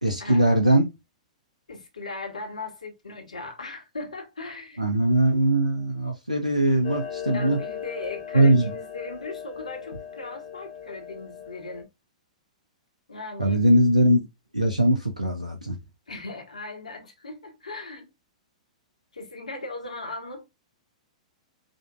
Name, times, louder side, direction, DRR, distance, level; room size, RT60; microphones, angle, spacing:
voice 1, 0.0-0.9 4.8-7.6 8.3-8.7 13.4-14.2 14.5-15.7, right 1 dB, 90° right, 0.8 m, -21 dB
voice 2, 1.7-4.8 7.3-11.9 13.1-13.6 16.1-18.1 19.1-20.5, left 3 dB, 75° left, 1.5 m, -38 dB
Clock, 6.8-11.8, left 8 dB, 55° left, 1.4 m, -37 dB
5.0 x 2.8 x 2.3 m
figure-of-eight pair, 105°, 4 cm